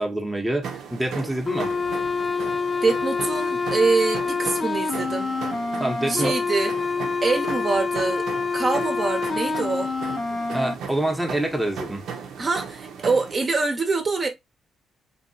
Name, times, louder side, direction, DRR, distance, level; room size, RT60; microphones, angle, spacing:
voice 1, 0.0-1.7 5.8-6.3 10.5-12.0, right 1 dB, 5° right, 0.8 m, -26 dB
sound 1, 0.6-13.3, right 6 dB, 75° right, 0.5 m, -37 dB
sound 2, 1.5-10.7, left 4 dB, 30° left, 0.8 m, -26 dB
voice 2, 2.8-5.3 6.1-6.7 7.2-8.2 8.5-9.9 12.4-14.3, right 4 dB, 35° right, 0.7 m, -24 dB
2.8 x 2.7 x 2.6 m
cardioid pair, 90°, 0 cm